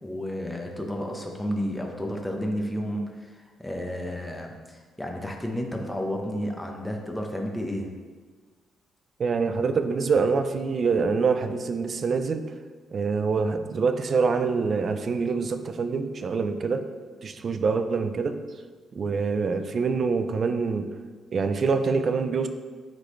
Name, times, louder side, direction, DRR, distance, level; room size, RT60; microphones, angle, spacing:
voice 1, 0.0-7.9, equal, 5° left, 2 dB, 1.0 m, -32 dB
voice 2, 9.2-12.4 12.9-16.8 17.2-18.4 18.9-20.9 21.3-22.5, right 5 dB, 45° right, 9 dB, 0.5 m, -25 dB
9.9 x 3.9 x 3.2 m, 1.5 s
cardioid pair, 90°, 0 cm